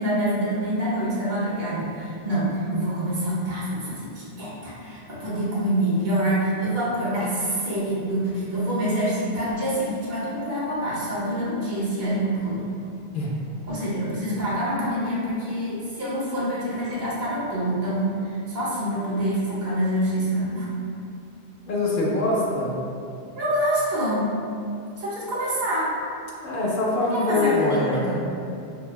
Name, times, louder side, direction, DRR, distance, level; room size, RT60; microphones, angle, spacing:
voice 1, 0.0-12.7 13.7-20.7 23.4-24.3 25.0-25.9 27.1-28.2, right 1 dB, 75° right, -7 dB, 1.1 m, -26 dB
voice 2, 21.7-22.7 26.4-28.2, left 2 dB, 65° left, -3 dB, 0.7 m, -23 dB
4.6 x 2.3 x 2.2 m, 2.6 s
omnidirectional pair, 1.0 m